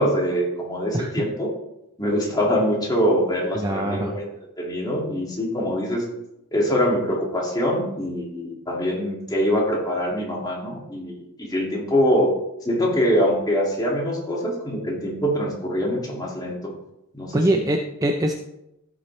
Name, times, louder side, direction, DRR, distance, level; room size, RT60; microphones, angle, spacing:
voice 1, 0.0-1.5 2.0-4.3 4.6-6.0 6.5-12.3 12.6-16.7 17.1-17.6, equal, 15° left, -2 dB, 2.2 m, -24 dB
voice 2, 3.5-4.2 17.3-18.3, right 1 dB, 15° right, 3 dB, 0.5 m, -23 dB
15.5 x 6.2 x 3.2 m, 0.86 s
head